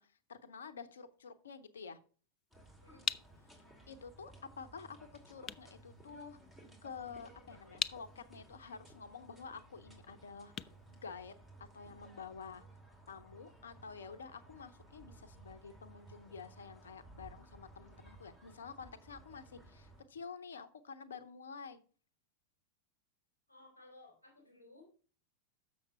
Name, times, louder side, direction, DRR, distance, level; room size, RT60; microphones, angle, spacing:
voice 1, 0.0-2.0 3.9-6.4 6.8-12.6 13.1-21.8, left 5 dB, 65° left, 11 dB, 0.8 m, -50 dB
sound 1, 2.4-11.8, left 9 dB, 25° left, 0.3 m, -45 dB
sound 2, 2.5-20.0, right 2 dB, 5° right, 2.5 m, -58 dB
voice 2, 2.8-3.2 23.5-25.0, left 2 dB, 85° right, -5 dB, 4.1 m, -59 dB
7.2 x 6.3 x 5.4 m, 0.40 s
figure-of-eight pair, 90°, 0 cm